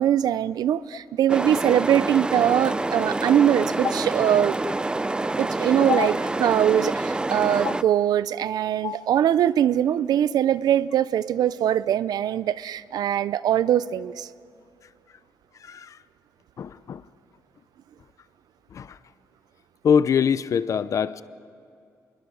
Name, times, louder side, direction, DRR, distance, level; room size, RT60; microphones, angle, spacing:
voice 1, 0.0-4.6 5.4-14.3, right 10 dB, 75° right, 17 dB, 0.6 m, -22 dB
sound 1, 1.3-7.8, right 2 dB, 15° right, 0.5 m, -27 dB
voice 2, 15.6-16.0 16.6-17.0 18.7-19.0 19.8-21.2, left 7 dB, 50° left, 16 dB, 0.7 m, -24 dB
25.5 x 21.5 x 6.4 m, 2.5 s
cardioid pair, 110°, 7 cm